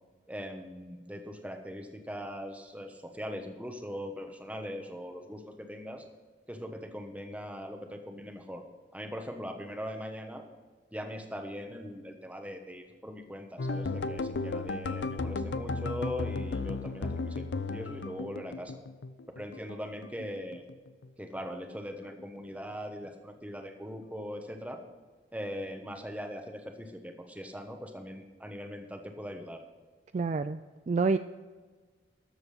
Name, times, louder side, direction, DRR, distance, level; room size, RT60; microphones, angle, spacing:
voice 1, 0.3-6.0 6.5-8.6 8.9-10.4 10.9-18.8 19.4-20.6 21.2-24.8 25.3-29.6, equal, 10° right, 4 dB, 1.2 m, -40 dB
sound 1, 13.6-19.8 20.0-21.1 21.4-21.7 22.0-22.2, left 3 dB, 80° left, 0.5 m, -35 dB
voice 2, 30.1-30.6 30.9-31.2, right 4 dB, 40° right, 11 dB, 0.3 m, -27 dB
13.0 x 7.1 x 5.6 m, 1.4 s
head